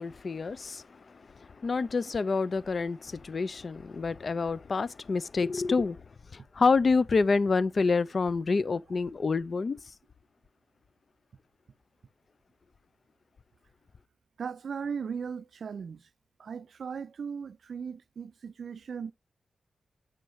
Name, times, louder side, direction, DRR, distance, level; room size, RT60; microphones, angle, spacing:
voice 1, 0.0-6.0 6.3-9.8, left 4 dB, 50° left, 0.3 m, -28 dB
voice 2, 14.4-16.0 16.4-19.1, right 6 dB, 70° right, 0.4 m, -37 dB
7.7 x 5.6 x 3.0 m
wide cardioid pair, 105°, 0 cm